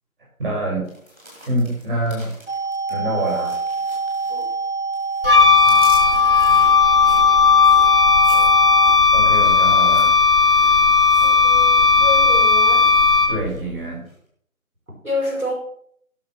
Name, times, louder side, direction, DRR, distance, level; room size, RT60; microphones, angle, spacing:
voice 1, 0.4-0.9 1.5-2.3 2.9-3.6 5.4-5.8 6.5-6.6 9.1-10.1 13.3-14.0, right 1 dB, 40° right, -3 dB, 6.0 m, -26 dB
sound 1, 0.8-4.7 4.9-11.9 12.1-12.5 12.9-13.6 14.0-14.1, equal, 10° right, 1.6 m, -43 dB
sound 2, 2.5-9.0, right 4 dB, 55° right, 0.5 m, -26 dB
Wind instrument woodwind instrument, 5.2-13.6, left 5 dB, 40° left, 0.6 m, -15 dB
voice 2, 11.2-12.9 15.0-15.5, left 1 dB, 85° right, 0 dB, 5.8 m, -28 dB
16.0 x 6.0 x 5.8 m, 0.64 s
figure-of-eight pair, 155°, 42 cm